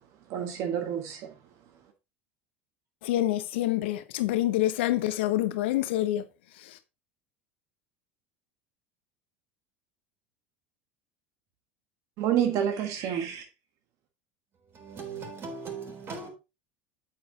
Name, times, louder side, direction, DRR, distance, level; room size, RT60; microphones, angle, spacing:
voice 1, 0.3-1.3 12.2-13.4, right 9 dB, 55° right, 1.3 m, -28 dB
voice 2, 3.0-6.3, left 14 dB, 75° left, 0.9 m, -26 dB
voice 3, 14.7-16.3, right 4 dB, 40° right, 3.5 m, -39 dB
8.3 x 7.8 x 2.8 m
hypercardioid pair, 80°, 6 cm